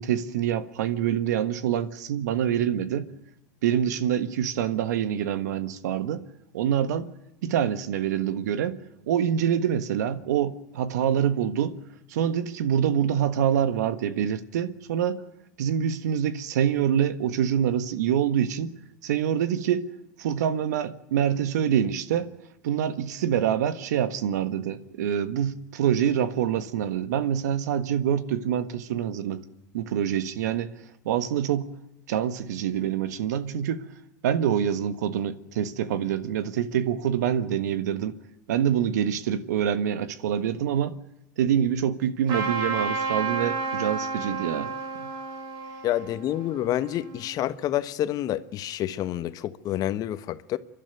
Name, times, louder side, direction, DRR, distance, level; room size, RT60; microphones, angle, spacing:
voice 1, 0.0-3.1 3.6-6.2 6.5-7.1 7.4-8.8 9.1-11.8 12.1-15.2 15.6-18.7 19.0-19.9 20.2-22.3 22.6-29.4 29.7-30.7 31.0-31.7 32.1-33.8 34.2-38.2 38.5-40.9 41.4-44.7 45.0-45.1, right 9 dB, 80° right, 1.5 m, -26 dB
Trumpet, 42.3-47.3, right 4 dB, 55° right, 5.3 m, -31 dB
voice 2, 45.8-50.6, left 12 dB, 45° left, 1.3 m, -28 dB
30.0 x 12.0 x 9.2 m
supercardioid pair, 105°, 9 cm